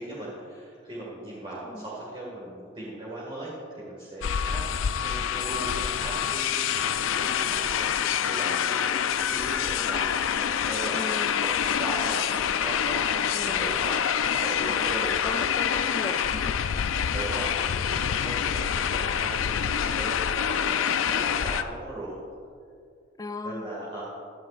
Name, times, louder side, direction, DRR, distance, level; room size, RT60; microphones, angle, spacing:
voice 1, 0.0-4.6 5.0-11.0 11.4-11.5 11.8-12.2 12.6-15.1 16.9-20.2 20.4-22.1 23.4-24.0, right 1 dB, 30° right, -6 dB, 2.0 m, -38 dB
sound 1, 4.2-21.6, left 8 dB, 80° left, 0.4 m, -26 dB
voice 2, 10.9-11.5 13.3-13.8 14.5-16.7 23.2-23.7, left 2 dB, 20° left, 9 dB, 0.4 m, -37 dB
16.5 x 11.5 x 2.5 m, 2.4 s
head